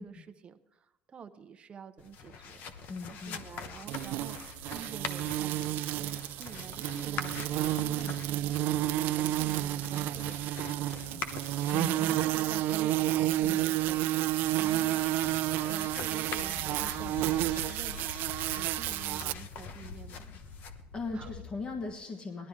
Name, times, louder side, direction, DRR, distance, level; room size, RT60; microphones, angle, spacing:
voice 1, 0.0-2.7 3.3-11.2 12.0-15.0 15.7-18.1 18.6-20.6 21.1-21.3, right 7 dB, 30° right, 8 dB, 0.8 m, -48 dB
sound 1, 2.0-21.9, left 5 dB, 60° left, 1.0 m, -44 dB
voice 2, 2.9-3.4 8.0-8.1 11.1-11.4 11.7-12.2 13.4-13.7 20.9-22.5, left 4 dB, 30° left, 4 dB, 1.5 m, -39 dB
sound 2, 3.9-19.3, right 15 dB, 70° right, 0.4 m, -30 dB
18.0 x 12.0 x 3.6 m, 0.96 s
cardioid pair, 115°, 4 cm